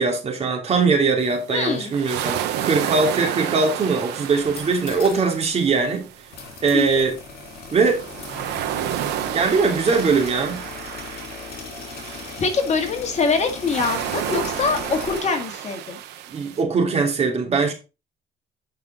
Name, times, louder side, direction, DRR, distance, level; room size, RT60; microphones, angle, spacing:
voice 1, 0.0-6.1 6.6-7.2 7.7-8.0 9.3-10.6 16.3-17.7, right 4 dB, 40° right, 2.6 m, -21 dB
sound 1, 1.2-16.6, right 11 dB, 85° right, 1.1 m, -31 dB
voice 2, 1.5-1.9 6.7-6.9 12.4-16.0, left 4 dB, 40° left, 1.8 m, -23 dB
sound 2, 4.5-5.3 5.6-5.7 6.3-15.2, left 5 dB, 65° left, 3.1 m, -38 dB
9.4 x 5.5 x 3.7 m
cardioid pair, 110°, 17 cm